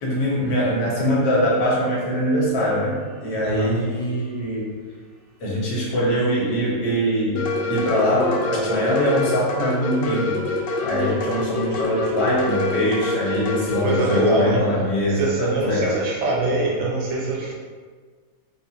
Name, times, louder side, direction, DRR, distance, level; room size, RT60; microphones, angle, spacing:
voice 1, 0.0-4.7 5.4-10.5 10.8-16.0, equal, 60° left, -5 dB, 1.5 m, -22 dB
voice 2, 3.4-3.8 13.6-14.6 15.2-17.5, right 2 dB, 75° right, -2 dB, 1.4 m, -24 dB
sound 1, 7.4-14.3, left 2 dB, 80° left, 1.5 m, -26 dB
4.3 x 2.5 x 2.7 m, 1.5 s
omnidirectional pair, 2.2 m